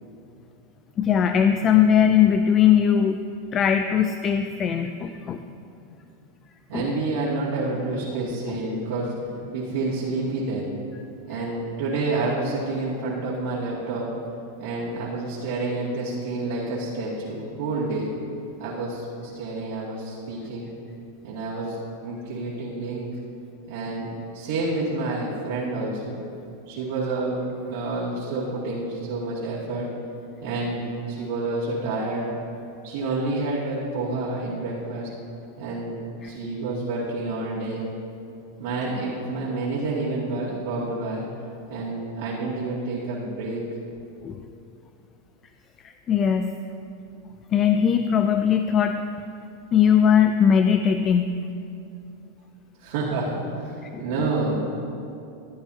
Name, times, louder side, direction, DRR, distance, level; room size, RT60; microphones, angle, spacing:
voice 1, 1.0-3.2 3.5-5.4 6.7-6.8 36.2-36.3 44.2-44.4 45.8-46.5 47.5-49.0 49.7-51.3 53.8-54.3, left 8 dB, 30° left, 8 dB, 0.3 m, -20 dB
voice 2, 6.7-10.7 11.3-14.1 14.6-20.7 21.2-21.8 22.0-23.1 23.7-26.2 26.7-27.4 27.7-29.9 30.4-32.3 32.8-35.1 35.6-37.9 38.6-41.2 41.7-43.6 52.8-54.6, right 2 dB, 75° right, -10 dB, 2.4 m, -29 dB
14.0 x 9.0 x 2.8 m, 2.6 s
supercardioid pair, 125°, 0 cm